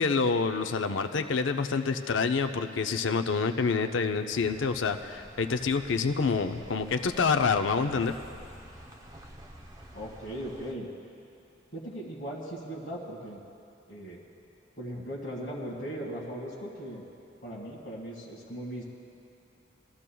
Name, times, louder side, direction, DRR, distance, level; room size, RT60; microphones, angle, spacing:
voice 1, 0.0-8.1, left 5 dB, 85° left, 7 dB, 0.5 m, -27 dB
sound 1, 4.3-10.7, right 1 dB, 20° right, 0.7 m, -49 dB
voice 2, 9.9-10.9 11.7-13.4 13.9-14.2 14.8-17.0 17.4-18.8, equal, 50° left, -7 dB, 1.9 m, -38 dB
21.5 x 13.5 x 2.3 m, 2.6 s
head